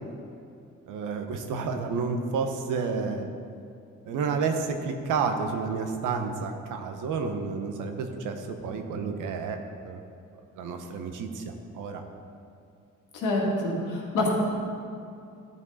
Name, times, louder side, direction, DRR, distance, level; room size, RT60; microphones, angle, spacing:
voice 1, 0.9-3.3 4.1-9.6 9.8-10.0 10.6-12.0, right 5 dB, 85° right, 5 dB, 1.0 m, -30 dB
voice 2, 13.1-14.3, left 2 dB, 90° left, -2 dB, 1.9 m, -27 dB
13.0 x 5.3 x 4.1 m, 2.5 s
cardioid pair, 90°, 30 cm